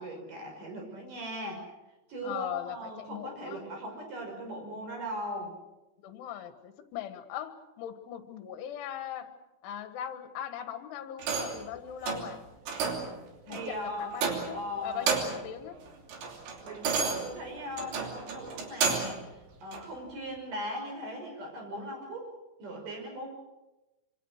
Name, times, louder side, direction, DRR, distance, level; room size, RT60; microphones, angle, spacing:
voice 1, 0.0-1.6 2.1-5.6 13.5-14.2 14.5-15.1 16.6-22.3 22.6-23.3, equal, 45° right, 2 dB, 7.4 m, -39 dB
voice 2, 2.2-3.6 6.0-9.3 9.6-12.4 13.5-15.8, left 10 dB, 80° left, 9 dB, 3.8 m, -40 dB
sound 1, 11.2-11.7 12.0-12.3 12.7-13.1 13.5-13.7 14.1-14.6 14.9-15.5 15.9-19.2 19.7-19.9, right 5 dB, 70° right, 5.1 m, -31 dB
26.5 x 24.5 x 6.5 m, 1.0 s
omnidirectional pair, 5.5 m